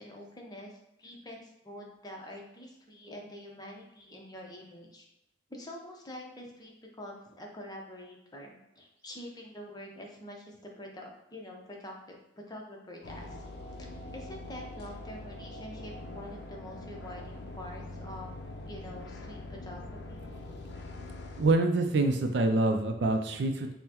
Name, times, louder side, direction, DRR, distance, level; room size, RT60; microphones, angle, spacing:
voice 1, 0.0-5.1 5.5-13.4 13.8-13.9 14.1-18.3 18.7-20.3, left 1 dB, 20° left, 0 dB, 0.7 m, -46 dB
sound 1, 13.0-21.5, left 2 dB, 70° left, 0.5 m, -43 dB
voice 2, 21.4-23.7, right 2 dB, 70° right, 5 dB, 0.4 m, -26 dB
5.4 x 2.1 x 2.9 m, 0.89 s
head